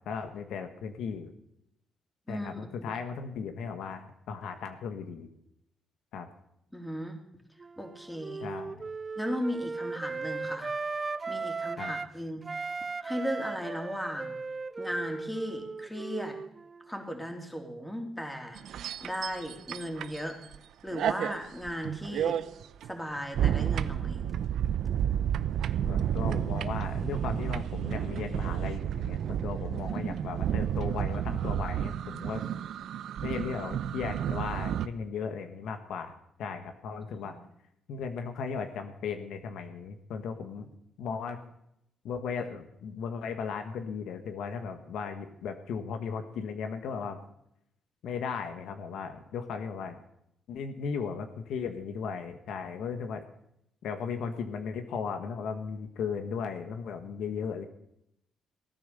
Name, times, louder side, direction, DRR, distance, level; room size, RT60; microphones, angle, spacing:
voice 1, 0.0-1.3 2.3-5.3 6.1-6.3 8.4-8.8 11.8-11.9 25.9-32.4 33.2-37.4 37.9-40.7 41.0-41.4 42.0-47.2 48.0-50.0 50.5-53.2 53.8-57.6, left 6 dB, 75° left, 7 dB, 1.5 m, -36 dB
voice 2, 6.7-7.2 7.8-8.5 9.2-10.7 11.3-12.7 13.0-14.4 14.8-16.4 16.9-20.4 20.8-22.4 22.8-24.2 30.1-30.2 37.1-37.3, equal, 5° left, 3 dB, 3.2 m, -36 dB
Wind instrument woodwind instrument, 7.6-12.1 12.4-16.9, right 4 dB, 30° right, 0.4 m, -37 dB
sound 1, 18.5-20.6 20.9-34.9, right 10 dB, 70° right, 0.7 m, -31 dB
17.0 x 9.7 x 6.9 m, 0.78 s
cardioid pair, 90°, 0 cm